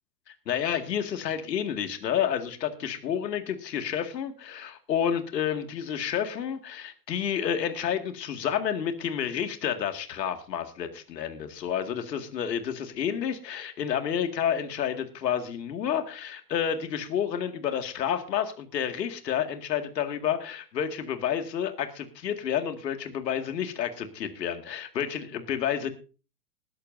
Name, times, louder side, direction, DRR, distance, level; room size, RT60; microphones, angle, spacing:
voice 1, 0.5-25.9, left 9 dB, 75° left, 6 dB, 2.2 m, -30 dB
20.5 x 11.0 x 2.7 m, 0.35 s
hypercardioid pair, 100°, 50 cm